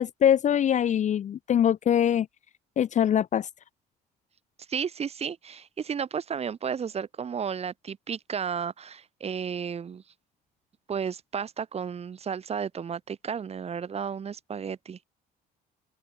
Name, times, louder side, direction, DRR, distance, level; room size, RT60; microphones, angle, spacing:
voice 1, 0.0-2.3 2.8-3.5, left 9 dB, 45° left, 0.9 m, -23 dB
voice 2, 4.7-10.0 10.9-15.0, right 7 dB, 40° right, 2.6 m, -33 dB
open air
cardioid pair, 110°, 17 cm